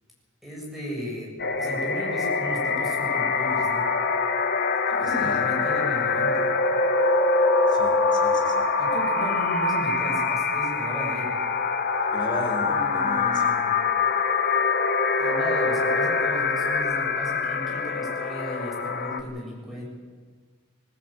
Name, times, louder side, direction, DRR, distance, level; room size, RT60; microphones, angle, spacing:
voice 1, 0.4-3.9 4.9-6.5 8.8-11.4 12.7-13.8 15.2-19.8, equal, ahead, -4 dB, 7.1 m, -36 dB
sound 1, 1.4-19.2, left 4 dB, 50° left, 1.5 m, -24 dB
voice 2, 5.0-5.5 7.7-8.7 12.1-13.6, left 2 dB, 20° left, 1 dB, 4.2 m, -36 dB
21.5 x 17.0 x 8.9 m, 1.5 s
head